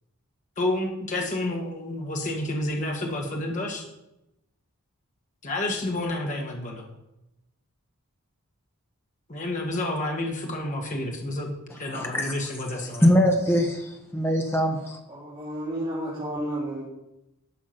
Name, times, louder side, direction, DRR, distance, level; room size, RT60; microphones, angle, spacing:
voice 1, 0.6-3.8 5.4-6.9 9.3-11.5 11.8-13.2, left 1 dB, 35° left, 0 dB, 1.7 m, -30 dB
voice 2, 11.9-12.3 13.0-15.0, equal, 10° left, 2 dB, 1.4 m, -22 dB
voice 3, 15.1-16.8, right 1 dB, 25° right, -9 dB, 2.9 m, -31 dB
11.5 x 6.1 x 5.9 m, 0.91 s
head